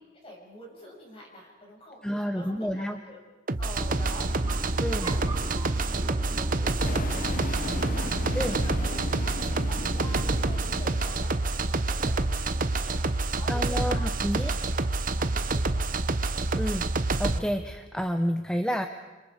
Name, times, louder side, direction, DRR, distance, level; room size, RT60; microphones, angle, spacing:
voice 1, 0.2-3.2 3.6-14.1 14.4-14.7 15.2-16.0, equal, 30° left, -1 dB, 6.4 m, -46 dB
voice 2, 2.0-3.0 4.8-5.1 8.3-8.6 13.5-14.5 16.5-16.8 17.2-18.9, equal, 5° left, 7 dB, 0.8 m, -29 dB
sound 1, 3.5-17.4, right 2 dB, 45° right, 1.0 m, -27 dB
sound 2, 3.8-9.3, right 1 dB, 20° right, 3.0 m, -39 dB
sound 3, 6.8-14.0, left 2 dB, 45° left, 0.9 m, -38 dB
28.0 x 26.0 x 4.9 m, 1.3 s
head